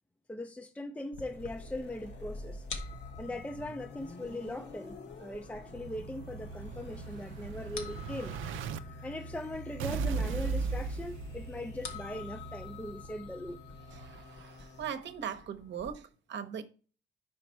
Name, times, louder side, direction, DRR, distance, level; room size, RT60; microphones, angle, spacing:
voice 1, 0.3-2.6 3.2-8.4 9.0-13.6, left 1 dB, 5° left, 0.4 m, -40 dB
sound 1, 1.1-15.9, left 5 dB, 85° left, 1.2 m, -50 dB
sound 2, 1.2-14.9, left 1 dB, 60° left, 1.2 m, -47 dB
Explosion, 5.4-8.8 9.8-11.8, right 5 dB, 85° right, 0.5 m, -36 dB
voice 2, 13.9-16.6, right 8 dB, 65° right, 0.9 m, -40 dB
5.0 x 5.0 x 4.5 m
cardioid pair, 90°, 20 cm